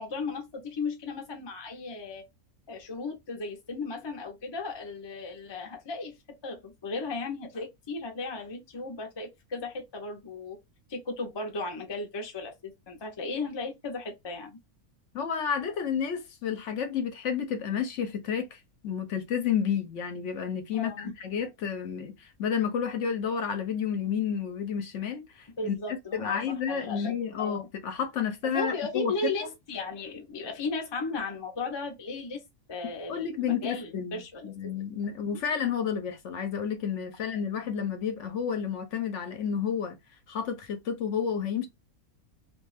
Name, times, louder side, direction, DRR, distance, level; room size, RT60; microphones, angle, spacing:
voice 1, 0.0-2.2 2.7-6.1 6.4-10.6 10.9-14.6 20.7-21.1 25.6-27.1 27.4-27.7 28.5-32.4 32.7-34.5 35.3-35.4, left 3 dB, 45° left, 0.3 m, -36 dB
voice 2, 15.1-25.7 26.1-29.1 33.1-40.0 40.3-41.7, left 7 dB, 65° left, 0.8 m, -31 dB
2.5 x 2.2 x 3.1 m
omnidirectional pair, 1.5 m